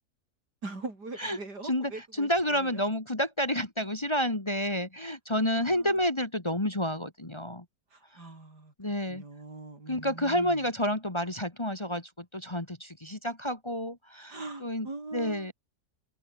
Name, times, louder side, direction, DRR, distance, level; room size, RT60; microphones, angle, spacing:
voice 1, 0.6-2.8 5.4-6.0 7.9-8.7 9.1-10.7 14.3-15.5, right 3 dB, 80° right, 5.8 m, -42 dB
voice 2, 2.2-7.6 8.8-9.2 9.9-14.9 15.1-15.5, equal, 15° left, 1.9 m, -30 dB
omnidirectional pair, 1.7 m